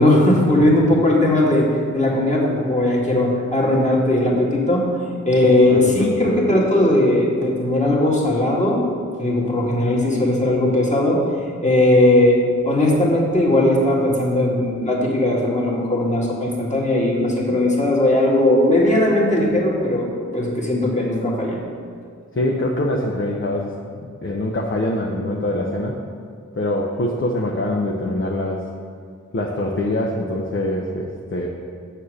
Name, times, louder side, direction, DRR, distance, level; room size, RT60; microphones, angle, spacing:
voice 1, 0.0-4.9 5.3-8.8 9.2-11.2 11.6-12.4 12.6-21.6, left 1 dB, 25° left, -4 dB, 1.9 m, -18 dB
voice 2, 5.7-6.1 22.3-26.0 26.5-28.7 29.3-31.5, left 1 dB, 40° left, -1 dB, 0.8 m, -24 dB
7.1 x 4.5 x 6.4 m, 2.1 s
cardioid pair, 55°, 30 cm